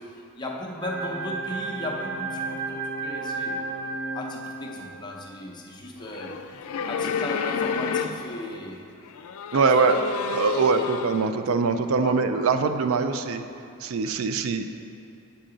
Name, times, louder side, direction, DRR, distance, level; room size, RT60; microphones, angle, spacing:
voice 1, 0.0-3.7 4.1-8.9 9.5-10.1 10.5-10.8 11.3-11.4 12.0-12.2, left 1 dB, 20° left, -1 dB, 0.6 m, -36 dB
sound 1, 0.8-5.3, right 3 dB, 50° right, 0.7 m, -33 dB
sound 2, 6.0-8.5 9.1-11.3, left 6 dB, 85° left, 0.4 m, -30 dB
voice 2, 9.5-10.0 10.3-13.4 13.8-14.6, right 4 dB, 70° right, 8 dB, 0.4 m, -23 dB
8.4 x 5.6 x 3.8 m, 2.7 s
head